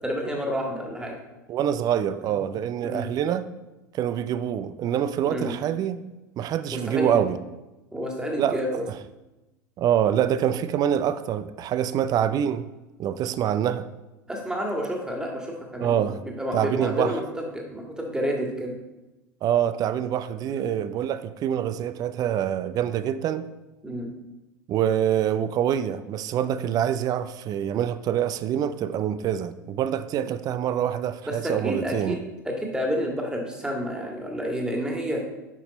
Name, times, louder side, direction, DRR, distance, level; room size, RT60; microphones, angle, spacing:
voice 1, 0.0-1.1 2.8-3.1 5.3-5.5 6.7-7.2 7.9-8.8 14.3-18.8 20.5-20.7 23.8-24.1 31.3-32.2 32.5-35.2, equal, 5° right, 1.9 m, -29 dB
voice 2, 1.5-3.5 3.9-6.0 6.4-7.4 8.4-8.6 8.9-9.0 9.8-12.7 13.0-13.9 15.8-16.2 16.5-17.2 19.4-23.4 24.7-32.2, right 10 dB, 35° right, 0.5 m, -25 dB
9.0 x 6.0 x 4.1 m
figure-of-eight pair, 80°, 11 cm